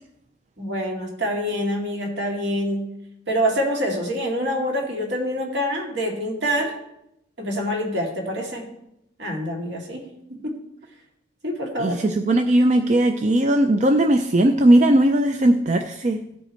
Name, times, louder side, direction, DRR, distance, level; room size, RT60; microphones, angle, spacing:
voice 1, 0.6-2.9 3.3-6.8 7.4-8.7 9.2-10.1 10.4-10.6 11.4-12.0, equal, 65° right, 0 dB, 2.3 m, -26 dB
voice 2, 11.8-16.2, right 1 dB, 40° right, 6 dB, 0.5 m, -18 dB
16.0 x 5.5 x 4.4 m, 0.82 s
head